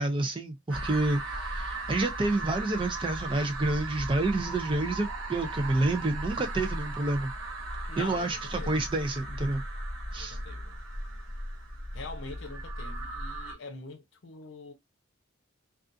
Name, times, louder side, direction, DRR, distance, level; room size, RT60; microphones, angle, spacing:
voice 1, 0.0-7.3 8.0-9.6 10.1-10.4, right 2 dB, 25° right, 0.4 m, -29 dB
sound 1, 0.7-13.5, right 1 dB, 80° right, 0.7 m, -37 dB
voice 2, 7.9-8.9 10.1-10.8 11.9-14.7, left 3 dB, 65° left, 0.6 m, -44 dB
2.4 x 2.3 x 2.5 m
head